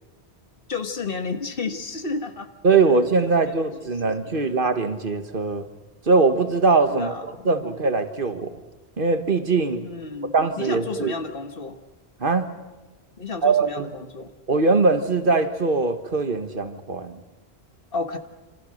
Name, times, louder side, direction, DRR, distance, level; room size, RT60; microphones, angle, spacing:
voice 1, 0.7-2.5 3.2-4.6 6.9-7.8 9.8-11.8 13.2-14.3 17.9-18.2, left 3 dB, 60° left, 1.7 m, -32 dB
voice 2, 2.6-5.7 6.1-7.1 7.4-8.6 9.0-9.8 10.3-11.1 12.2-12.5 13.4-13.9 14.5-17.2, right 4 dB, 55° right, 1.6 m, -21 dB
27.0 x 27.0 x 6.5 m
omnidirectional pair, 1.1 m